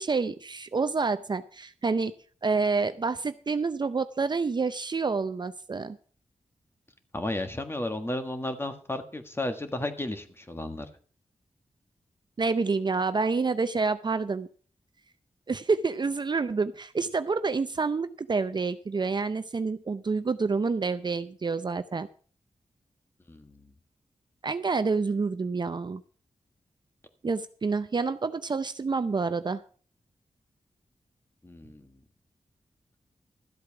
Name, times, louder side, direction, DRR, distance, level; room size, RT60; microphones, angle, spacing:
voice 1, 0.0-2.1 2.4-6.0 12.4-14.5 15.5-22.1 24.4-26.0 27.2-29.6, right 4 dB, 40° right, 11 dB, 0.6 m, -28 dB
voice 2, 7.1-10.9 23.3-23.7 31.4-31.9, left 1 dB, 20° left, 7 dB, 1.5 m, -33 dB
13.5 x 8.0 x 5.9 m, 0.43 s
wide cardioid pair, 115°, 12 cm